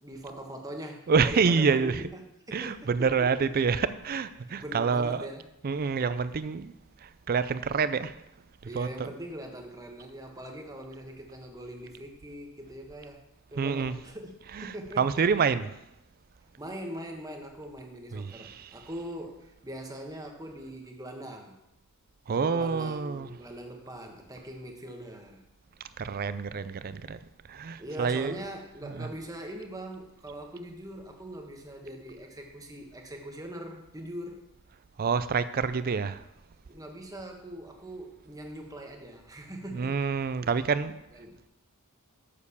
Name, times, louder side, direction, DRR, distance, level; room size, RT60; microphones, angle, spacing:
voice 1, 0.0-3.5 4.5-5.5 8.6-13.2 13.5-14.3 14.6-15.3 16.6-21.6 22.3-25.4 27.8-34.4 35.7-35.8 36.7-40.0 40.4-40.5 41.1-41.4, right 1 dB, 15° right, 1.3 m, -42 dB
voice 2, 1.1-2.0 2.5-5.3 5.6-6.7 7.0-8.2 8.8-9.1 13.6-13.9 14.5-15.7 18.1-18.8 22.3-23.3 26.0-28.3 28.8-29.1 35.0-36.2 39.7-41.0, right 5 dB, 40° right, 0.4 m, -27 dB
7.0 x 6.8 x 7.0 m
head